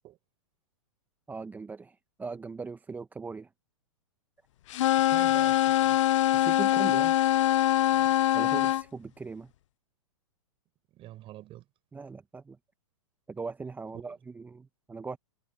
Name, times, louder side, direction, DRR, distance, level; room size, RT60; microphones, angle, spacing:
voice 1, 1.3-3.5 6.3-7.2 8.3-9.5 11.9-12.6 13.3-15.2, right 4 dB, 10° right, 0.9 m, -39 dB
sound 1, 4.7-8.8, left 13 dB, 65° left, 0.4 m, -23 dB
voice 2, 4.9-6.0 7.9-8.2 10.9-11.7 13.9-14.2, right 15 dB, 30° right, 4.9 m, -46 dB
hypercardioid pair, 120°, 17 cm